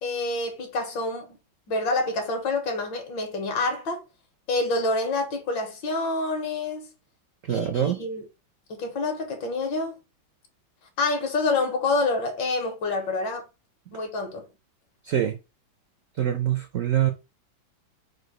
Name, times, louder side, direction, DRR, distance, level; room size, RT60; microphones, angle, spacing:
voice 1, 0.0-1.4 1.7-4.0 4.5-6.9 7.5-8.3 8.7-10.0 11.0-13.5 13.9-14.5, left 3 dB, 70° left, 1.8 m, -27 dB
voice 2, 7.5-8.0 15.0-15.4 16.2-17.1, right 10 dB, 75° right, 0.7 m, -24 dB
4.9 x 2.2 x 4.8 m
omnidirectional pair, 2.2 m